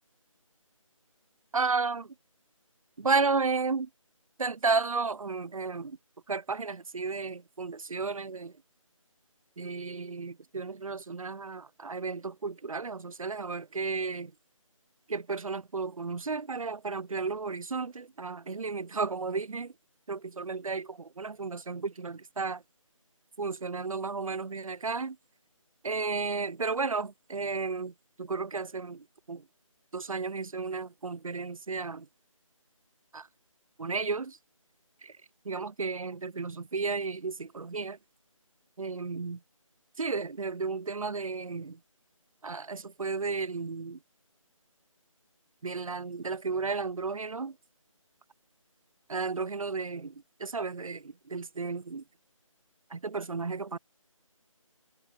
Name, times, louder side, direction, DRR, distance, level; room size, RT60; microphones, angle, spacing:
voice 1, 1.5-2.1 3.0-3.9 4.4-6.0 6.3-8.5 9.6-14.3 15.1-19.7 20.1-22.6 23.4-25.2 25.8-27.9 28.2-29.4 29.9-32.1 33.1-33.3 33.8-34.4 35.0-35.1 35.4-38.0 38.8-39.4 40.0-41.8 42.4-44.0 45.6-47.5 49.1-52.0 52.9-53.8, right 4 dB, 75° right, 0.7 m, -33 dB
figure-of-eight pair, 175°, 18 cm